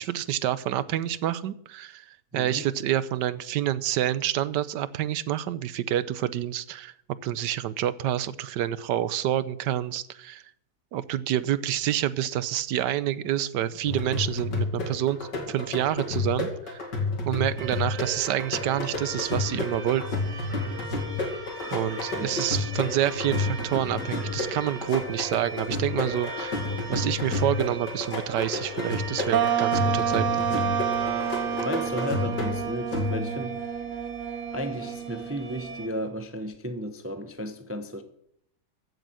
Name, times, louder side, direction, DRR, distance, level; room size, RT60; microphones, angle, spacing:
voice 1, 0.0-6.9 7.2-10.4 10.9-16.8 17.2-20.2 21.7-26.6 26.9-30.5, right 12 dB, 80° right, 1.3 m, -28 dB
voice 2, 2.3-2.6 22.2-22.3 31.6-33.6 34.5-38.0, equal, 10° right, 0.7 m, -33 dB
sound 1, 13.8-33.5, left 3 dB, 85° left, 3.2 m, -31 dB
sound 2, 17.6-35.9, right 2 dB, 40° right, 2.1 m, -40 dB
sound 3, 29.3-36.0, right 9 dB, 55° right, 1.0 m, -29 dB
15.0 x 8.0 x 6.3 m
omnidirectional pair, 1.8 m